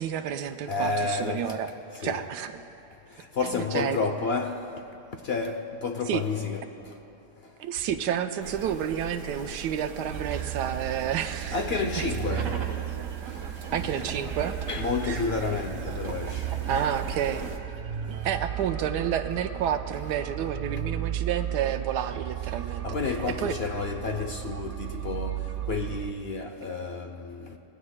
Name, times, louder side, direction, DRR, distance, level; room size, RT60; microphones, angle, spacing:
voice 1, 0.0-1.7 2.0-2.6 3.5-4.0 6.1-6.2 7.6-12.1 12.3-12.5 13.7-14.6 16.7-17.5 18.2-22.9 23.3-23.5, right 9 dB, 90° right, 1.2 m, -30 dB
voice 2, 0.7-1.6 2.0-2.3 3.2-4.7 5.2-6.7 11.5-12.6 14.7-16.5 22.8-27.6, left 4 dB, 60° left, 0.6 m, -30 dB
sound 1, 8.4-17.6, right 4 dB, 55° right, 1.4 m, -39 dB
sound 2, 10.1-26.1, right 12 dB, 70° right, 0.7 m, -35 dB
25.5 x 19.5 x 2.2 m
omnidirectional pair, 1.8 m